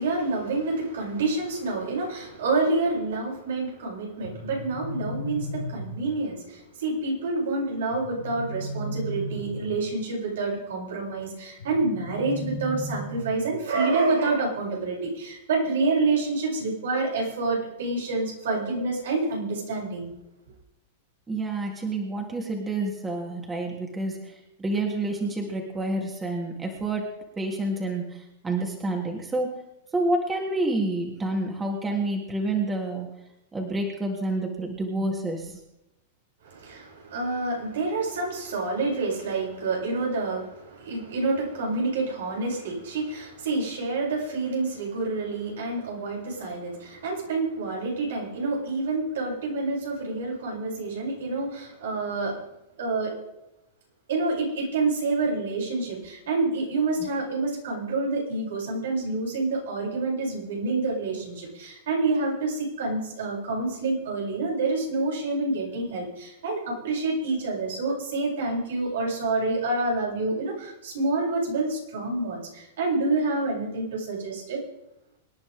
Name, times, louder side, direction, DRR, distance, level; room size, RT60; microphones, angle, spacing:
voice 1, 0.0-20.1 36.4-52.4 52.8-53.1 54.1-74.6, right 3 dB, 75° right, -3 dB, 7.6 m, -28 dB
sound 1, 4.2-6.2 7.9-9.9 11.6-13.6, equal, 70° left, 5.0 m, -35 dB
voice 2, 21.3-27.1 27.4-29.5 29.9-33.1 33.5-35.6 57.0-57.1, right 2 dB, 15° right, 0 dB, 3.3 m, -28 dB
26.0 x 10.5 x 3.8 m, 0.89 s
hypercardioid pair, 110°, 0 cm